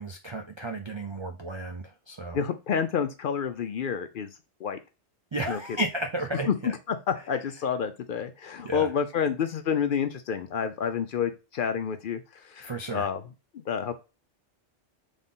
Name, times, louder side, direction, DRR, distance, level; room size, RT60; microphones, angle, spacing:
voice 1, 0.0-2.4 5.3-6.7 8.6-8.9 12.6-13.1, right 2 dB, 50° right, 4 dB, 0.3 m, -33 dB
voice 2, 2.3-4.3 4.6-4.8 5.5-5.6 6.5-13.2 13.5-13.9, left 7 dB, 60° left, 9 dB, 0.6 m, -29 dB
3.9 x 3.5 x 3.7 m, 0.30 s
omnidirectional pair, 1.2 m